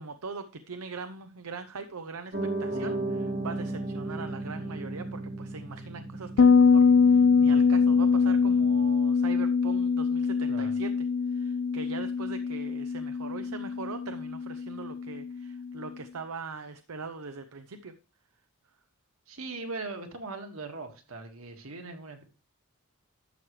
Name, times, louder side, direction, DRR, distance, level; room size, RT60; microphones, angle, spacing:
voice 1, 0.0-10.9 11.3-17.9, right 4 dB, 85° right, 9 dB, 0.7 m, -41 dB
Piano, 2.3-8.9, right 2 dB, 45° right, 1.5 m, -36 dB
Bass guitar, 6.4-15.7, left 5 dB, 60° left, 0.4 m, -23 dB
voice 2, 19.3-22.2, right 3 dB, 70° right, 4 dB, 2.0 m, -40 dB
12.0 x 7.4 x 3.3 m, 0.33 s
head